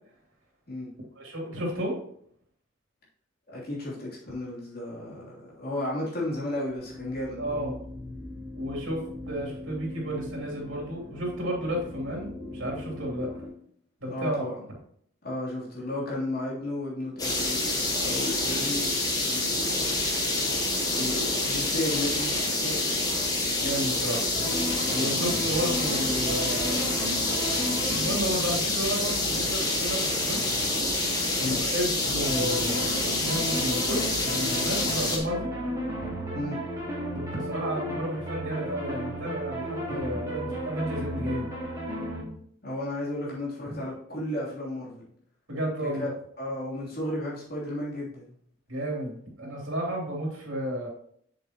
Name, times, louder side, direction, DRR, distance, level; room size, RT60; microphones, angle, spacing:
voice 1, 1.1-2.0 7.4-7.7 8.5-9.0 9.3-13.4 14.0-14.5 23.6-24.2 24.9-26.9 27.9-30.4 31.4-35.5 37.1-41.5 43.6-43.8 45.5-46.1 48.7-50.9, equal, 80° right, -2 dB, 3.1 m, -32 dB
voice 2, 3.5-7.6 14.1-14.6 15.2-20.1 20.9-23.2 31.4-31.6 36.3-36.6 42.6-45.1 45.8-46.1 46.4-48.3, left 1 dB, 50° left, -6 dB, 3.1 m, -34 dB
sound 1, 6.5-13.5, left 1 dB, 5° left, 3.3 m, -41 dB
sound 2, 17.2-35.2, left 2 dB, 20° left, 1.3 m, -27 dB
sound 3, 24.3-42.2, equal, 15° right, 2.3 m, -35 dB
7.4 x 7.0 x 3.0 m, 0.65 s
head